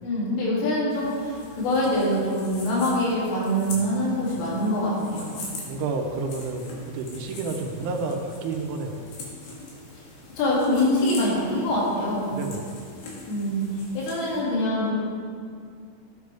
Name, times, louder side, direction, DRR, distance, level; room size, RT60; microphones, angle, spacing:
voice 1, 0.0-5.4 10.4-12.3 13.3-13.6 13.9-15.0, left 1 dB, 85° left, -6 dB, 5.4 m, -24 dB
sound 1, 0.9-14.4, left 2 dB, 60° left, 3.6 m, -43 dB
voice 2, 3.7-4.4 5.7-9.0 12.3-12.8, right 3 dB, 80° right, 2 dB, 3.3 m, -31 dB
14.0 x 9.5 x 3.5 m, 2.2 s
omnidirectional pair, 5.6 m